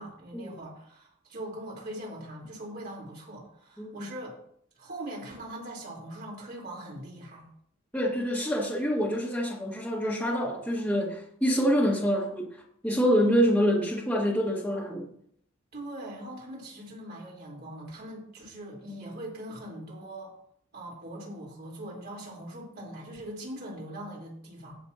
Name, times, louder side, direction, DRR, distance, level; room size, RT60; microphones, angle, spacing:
voice 1, 0.0-4.4 4.8-7.5 15.7-20.4 20.7-24.8, right 1 dB, 55° right, -3 dB, 4.1 m, -41 dB
voice 2, 3.8-4.1 7.9-12.5 12.8-15.1, equal, 5° left, -5 dB, 2.0 m, -26 dB
18.5 x 6.8 x 2.9 m, 0.68 s
head